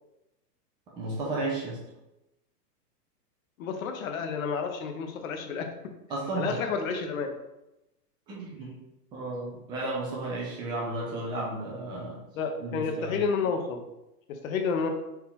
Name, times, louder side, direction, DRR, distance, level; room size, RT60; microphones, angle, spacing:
voice 1, 1.0-1.8 6.1-6.5 8.3-8.8 9.1-12.2 12.6-13.3, right 2 dB, 10° right, -5 dB, 0.5 m, -33 dB
voice 2, 3.6-5.7 6.4-7.3 12.4-13.8 14.3-14.9, left 5 dB, 55° left, 5 dB, 0.8 m, -30 dB
4.4 x 2.9 x 3.6 m, 0.93 s
hypercardioid pair, 140°, 48 cm